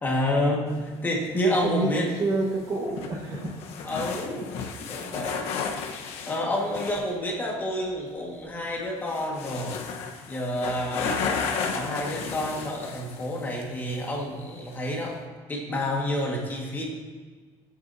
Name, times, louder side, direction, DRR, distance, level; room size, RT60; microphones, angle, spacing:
voice 1, 0.0-2.1 3.8-4.4 4.9-5.6 6.3-9.8 10.3-11.3 11.7-15.2 15.5-16.9, left 1 dB, 15° left, -2 dB, 1.9 m, -29 dB
sound 1, 0.7-7.2 8.5-8.6 9.0-13.7 14.0-14.1 14.8-15.1, left 5 dB, 60° left, 1.2 m, -34 dB
voice 2, 1.4-3.5, right 2 dB, 30° right, -1 dB, 1.6 m, -28 dB
21.5 x 9.0 x 2.8 m, 1.5 s
cardioid pair, 175°, 12 cm